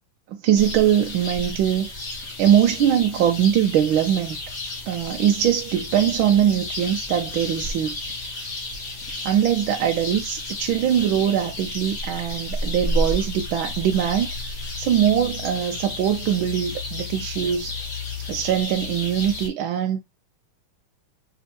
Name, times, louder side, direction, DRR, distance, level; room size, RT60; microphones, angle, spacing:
voice 1, 0.3-2.0 2.4-4.4 4.9-7.9 9.2-17.7 18.3-20.0, right 10 dB, 80° right, 1.4 m, -22 dB
sound 1, 0.6-19.5, left 2 dB, 40° left, 1.3 m, -32 dB
5.2 x 3.6 x 2.8 m
omnidirectional pair, 2.3 m